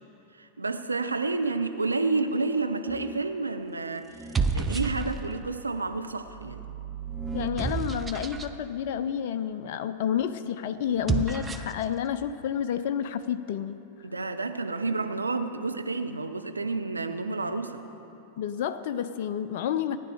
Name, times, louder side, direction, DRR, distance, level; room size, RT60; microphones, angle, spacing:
voice 1, 0.4-6.6 14.0-17.8, right 3 dB, 80° right, 7 dB, 0.6 m, -30 dB
sound 1, 2.9-3.3 4.1-5.5 6.2-8.5 10.9-11.8, right 5 dB, 15° right, 0.6 m, -31 dB
voice 2, 7.3-13.8 18.4-20.0, left 9 dB, 50° left, 10 dB, 0.4 m, -30 dB
15.5 x 9.9 x 4.9 m, 2.9 s
figure-of-eight pair, 90°, 0 cm